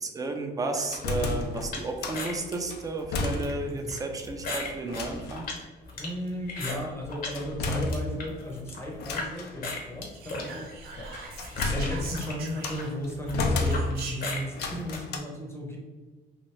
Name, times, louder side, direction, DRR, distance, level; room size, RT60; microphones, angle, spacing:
voice 1, 0.0-5.4, right 3 dB, 20° right, 4 dB, 0.5 m, -33 dB
sound 1, 0.8-2.3 2.7-3.8 4.1-4.2 4.9-5.5 7.3-8.5 9.0-9.6 10.7-12.9 13.3-14.2 14.5-15.2, left 3 dB, 75° left, 0.5 m, -32 dB
sound 2, 1.7-7.4 7.7-9.3 9.6-15.0, left 2 dB, 55° left, 0.9 m, -37 dB
voice 2, 5.9-10.7 11.7-15.8, equal, 15° left, -2 dB, 0.7 m, -35 dB
Whispering, 10.1-13.1 13.7-14.4, right 4 dB, 65° right, 0.7 m, -42 dB
2.9 x 2.5 x 3.1 m, 1.3 s
cardioid pair, 110°, 17 cm